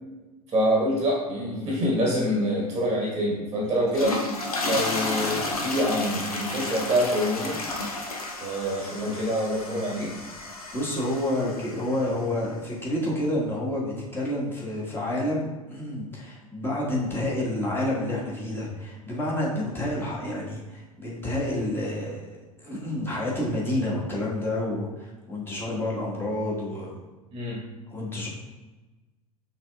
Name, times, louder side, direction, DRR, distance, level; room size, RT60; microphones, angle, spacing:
voice 1, 0.5-4.2 4.6-7.6 8.4-10.1 27.3-27.7, equal, 20° right, -3 dB, 1.2 m, -26 dB
voice 2, 1.3-1.7 10.7-27.0 27.9-28.3, left 1 dB, 10° left, -5 dB, 1.4 m, -29 dB
sound 1, 3.8-12.1, left 2 dB, 80° left, 0.7 m, -32 dB
5.7 x 3.7 x 2.3 m, 1.2 s
figure-of-eight pair, 80°, 19 cm